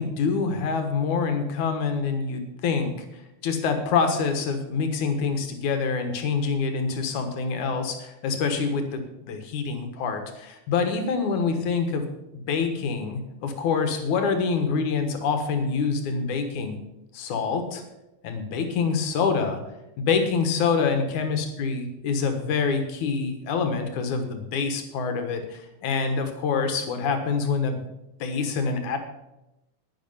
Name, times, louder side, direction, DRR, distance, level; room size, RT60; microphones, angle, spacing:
voice 1, 0.0-2.9 3.4-12.0 12.5-16.8 17.1-17.8 18.2-19.6 20.0-27.8 28.2-29.0, left 5 dB, 70° left, 6 dB, 2.8 m, -26 dB
11.0 x 10.0 x 5.6 m, 0.92 s
omnidirectional pair, 3.7 m